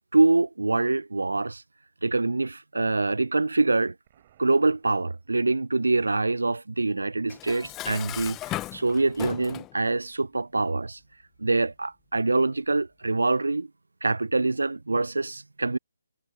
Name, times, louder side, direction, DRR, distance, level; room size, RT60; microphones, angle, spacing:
voice 1, 0.1-1.6 2.0-3.9 4.4-11.0 11.4-13.7 14.0-15.8, right 3 dB, 75° right, 0.4 m, -25 dB
Explosion, 4.0-5.9, right 12 dB, 35° right, 6.8 m, -64 dB
Dishes pots and pans, 7.3-9.8, left 16 dB, 15° left, 0.5 m, -36 dB
figure-of-eight pair, 145°, 0 cm